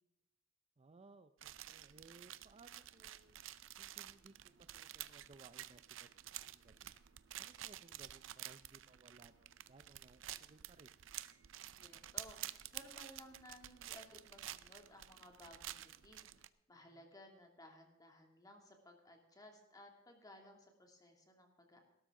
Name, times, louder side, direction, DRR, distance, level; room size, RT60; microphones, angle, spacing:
voice 1, 0.8-3.4 3.8-6.1 6.4-6.9 7.4-10.9 16.8-17.1, right 3 dB, 30° right, 11 dB, 0.5 m, -63 dB
sound 1, 1.4-16.5, right 13 dB, 80° right, 0.6 m, -51 dB
voice 2, 11.8-21.8, left 1 dB, 20° left, 2 dB, 2.5 m, -59 dB
18.5 x 12.5 x 3.7 m, 0.92 s
head